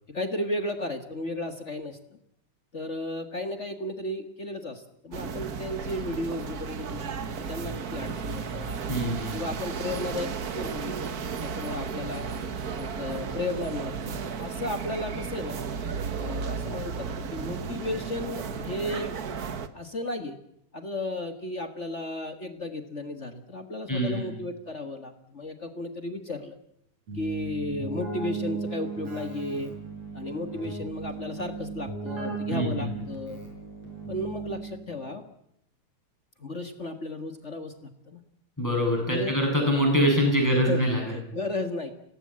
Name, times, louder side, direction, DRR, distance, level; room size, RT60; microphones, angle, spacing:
voice 1, 0.1-2.0 2.7-7.1 7.5-8.8 9.3-11.1 11.3-12.3 12.8-15.6 16.2-19.2 19.7-20.4 20.7-26.6 27.1-29.7 30.1-33.4 34.1-35.2 36.4-38.2 39.1-39.4 40.4-41.9, left 2 dB, 40° left, 7 dB, 1.0 m, -34 dB
sound 1, 5.1-19.7, right 6 dB, 80° right, 0.8 m, -34 dB
voice 2, 8.9-9.4 23.9-24.3 32.5-32.9 38.6-41.0, equal, 5° left, 1 dB, 7.9 m, -24 dB
Keyboard (musical), 27.1-34.9, right 4 dB, 55° right, 8.0 m, -36 dB
25.5 x 18.5 x 7.5 m, 0.76 s
omnidirectional pair, 3.6 m